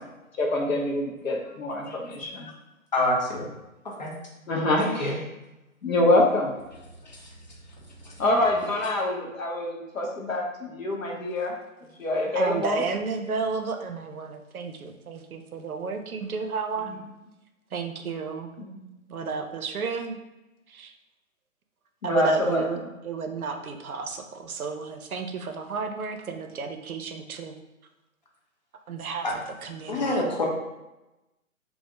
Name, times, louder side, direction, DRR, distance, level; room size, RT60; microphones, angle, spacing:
voice 1, 0.4-2.5 4.5-5.1 5.8-6.5 8.2-11.5 12.0-12.8 18.6-18.9 22.0-22.6, left 1 dB, 70° left, -1 dB, 0.9 m, -25 dB
voice 2, 2.9-3.5 4.0-4.1 4.8-5.2 7.1-7.2 8.0-8.1 29.2-29.3 29.9-30.5, left 1 dB, 35° left, -2 dB, 0.5 m, -26 dB
voice 3, 12.3-16.9 17.7-18.5 19.1-20.2 20.7-20.9 22.0-27.5 28.9-30.2, right 5 dB, 85° right, 6 dB, 0.6 m, -32 dB
2.5 x 2.1 x 3.6 m, 1.0 s
figure-of-eight pair, 140°, 42 cm